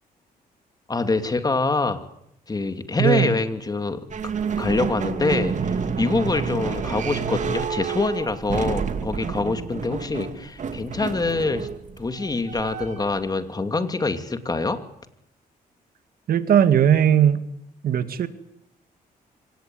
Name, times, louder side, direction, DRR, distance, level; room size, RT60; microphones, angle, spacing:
voice 1, 0.9-2.0 2.5-4.1 4.6-11.7 12.0-14.8, left 3 dB, 25° left, 9 dB, 2.7 m, -25 dB
voice 2, 3.0-3.4 16.3-17.4 17.8-18.3, right 9 dB, 70° right, 11 dB, 2.1 m, -18 dB
sound 1, 4.1-13.2, right 6 dB, 50° right, 2.6 m, -29 dB
25.0 x 18.5 x 9.5 m, 0.77 s
cardioid pair, 95°, 16 cm